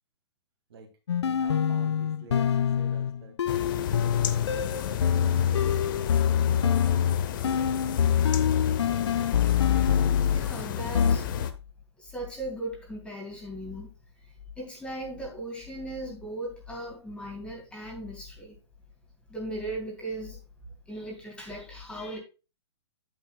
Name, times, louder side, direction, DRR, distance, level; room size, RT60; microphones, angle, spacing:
sound 1, 1.1-10.5 10.9-11.2, left 8 dB, 70° left, 0.4 m, -25 dB
voice 1, 1.2-3.4 3.7-4.8 5.1-5.8 6.4-7.8, right 4 dB, 60° right, 2 dB, 2.5 m, -48 dB
sound 2, 3.5-11.5, left 9 dB, 45° left, 0.8 m, -33 dB
voice 2, 10.3-11.2 12.0-13.9 14.2-18.6 19.3-20.4 20.9-22.2, right 1 dB, 5° left, 0 dB, 2.5 m, -38 dB
8.8 x 8.2 x 2.3 m, 0.30 s
figure-of-eight pair, 115°, 15 cm